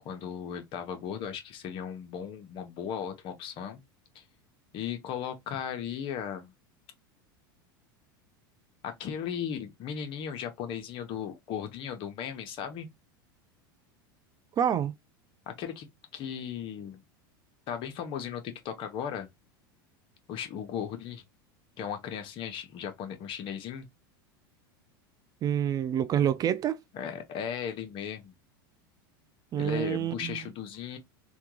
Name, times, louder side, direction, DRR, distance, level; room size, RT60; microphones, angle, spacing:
voice 1, 0.0-3.8 4.1-4.2 4.7-6.5 8.8-12.9 15.5-15.9 16.1-17.0 17.7-19.3 20.3-21.2 21.8-23.9 26.9-28.3 29.5-31.0, left 8 dB, 45° left, 0.9 m, -36 dB
voice 2, 14.6-14.9 25.4-26.8 29.5-30.4, right 9 dB, 30° right, 0.3 m, -27 dB
3.5 x 2.2 x 3.0 m
hypercardioid pair, 100°, 12 cm